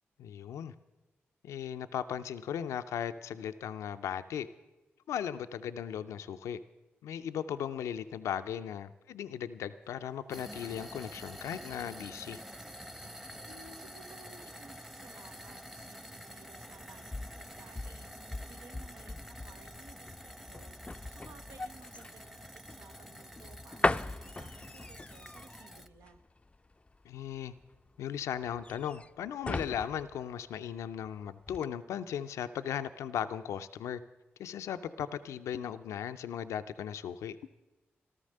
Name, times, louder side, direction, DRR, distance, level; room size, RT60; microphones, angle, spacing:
voice 1, 0.2-0.7 1.4-4.5 5.1-6.6 7.0-12.4 27.0-27.5 28.0-34.0 34.4-37.4, left 9 dB, 85° left, 10 dB, 0.4 m, -37 dB
sound 1, 9.8-14.8, right 2 dB, 55° right, 2.6 m, -62 dB
sound 2, 10.3-25.9, equal, 5° right, 0.9 m, -48 dB
voice 2, 13.4-26.2, right 4 dB, 80° right, 7 dB, 0.9 m, -57 dB
sound 3, 16.8-31.1 31.4-31.7, left 2 dB, 25° left, 0.4 m, -39 dB
13.5 x 13.0 x 6.5 m, 1.1 s
supercardioid pair, 40°, 5 cm